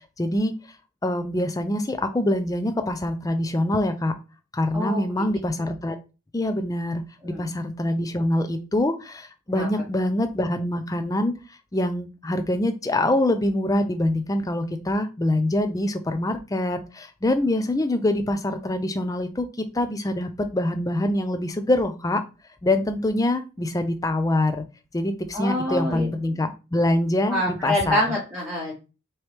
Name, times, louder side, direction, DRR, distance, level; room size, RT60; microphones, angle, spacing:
voice 1, 0.2-0.5 1.0-4.1 4.5-6.0 6.3-11.3 11.7-22.2 22.6-24.6 24.9-28.0, left 1 dB, 15° left, 9 dB, 0.4 m, -24 dB
voice 2, 4.7-5.2 7.2-7.4 9.5-9.7 25.3-26.1 27.3-28.7, left 1 dB, 5° right, -6 dB, 1.2 m, -26 dB
4.5 x 3.1 x 3.2 m, 0.31 s
head